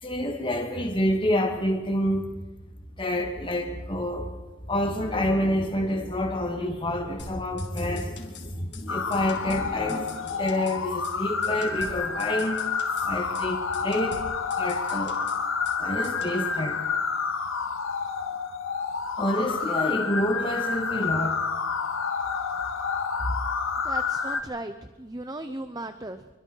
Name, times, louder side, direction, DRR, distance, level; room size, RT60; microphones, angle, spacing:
voice 1, 0.0-2.4 3.0-4.3 4.7-12.7 13.0-14.2 14.6-15.2 15.8-16.8 19.2-21.4, left 1 dB, 25° left, 3 dB, 2.5 m, -28 dB
sound 1, 7.2-8.5 8.7-8.9 9.1-10.8 11.0-11.2 11.4-13.1 13.3-13.5 13.7-15.8 16.0-16.4, left 4 dB, 55° left, 3.6 m, -44 dB
sound 2, 8.9-24.4, left 5 dB, 90° left, 2.0 m, -29 dB
voice 2, 23.8-26.3, right 2 dB, 20° right, 9 dB, 0.8 m, -36 dB
26.5 x 24.0 x 4.7 m, 1.2 s
head